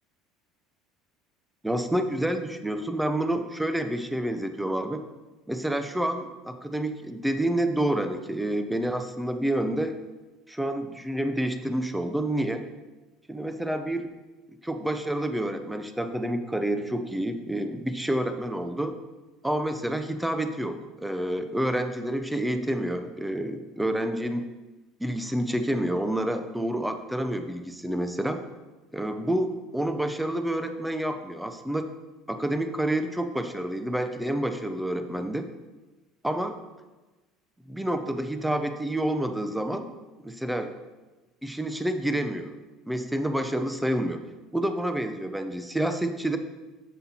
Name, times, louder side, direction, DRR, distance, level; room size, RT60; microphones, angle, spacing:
voice 1, 1.6-5.0 5.5-10.0 10.5-12.6 13.3-14.1 14.6-18.9 19.4-24.4 25.0-28.4 28.9-31.9 32.3-35.5 36.2-36.6 37.7-39.9 40.2-40.7 41.4-42.5 42.9-44.2 44.5-46.4, right 1 dB, 5° right, 8 dB, 0.6 m, -28 dB
7.7 x 7.4 x 4.3 m, 1.2 s
cardioid pair, 145°, 0 cm